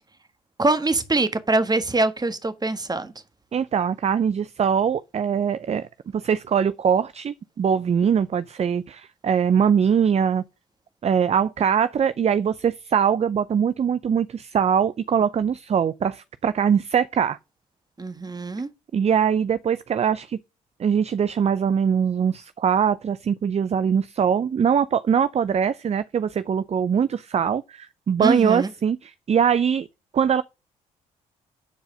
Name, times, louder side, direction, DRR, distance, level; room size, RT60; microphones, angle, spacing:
voice 1, 0.6-3.1 18.0-18.7 28.2-28.7, right 2 dB, 20° right, 1.5 m, -23 dB
voice 2, 3.5-5.9 6.1-10.4 11.0-17.4 18.9-20.4 20.8-29.9 30.1-30.4, right 7 dB, 40° right, 0.5 m, -22 dB
10.0 x 4.8 x 6.4 m
hypercardioid pair, 50°, 17 cm